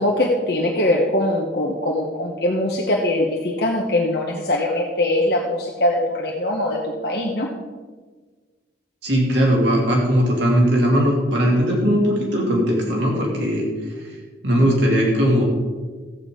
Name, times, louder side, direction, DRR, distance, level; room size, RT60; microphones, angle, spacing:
voice 1, 0.0-7.5, left 1 dB, 55° left, -1 dB, 1.2 m, -22 dB
voice 2, 9.0-13.6 14.4-15.4, equal, 75° right, -2 dB, 3.0 m, -18 dB
14.0 x 8.3 x 5.2 m, 1.4 s
head